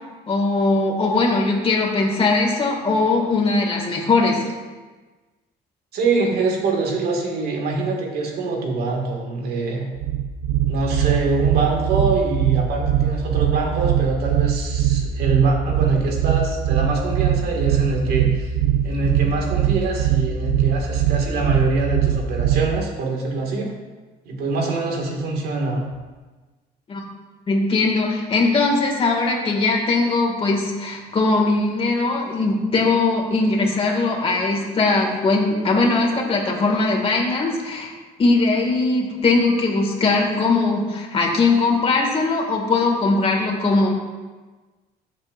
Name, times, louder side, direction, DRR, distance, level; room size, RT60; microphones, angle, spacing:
voice 1, 0.3-4.4 26.9-27.0 27.5-37.9 38.2-43.9, left 3 dB, 35° left, -1 dB, 2.3 m, -20 dB
voice 2, 5.9-9.8 10.7-18.5 18.8-23.7 24.3-25.8, right 3 dB, 70° right, 0 dB, 2.2 m, -24 dB
sound 1, 10.0-22.8, right 11 dB, 90° right, 0.6 m, -21 dB
14.5 x 7.4 x 2.6 m, 1.3 s
cardioid pair, 110°, 17 cm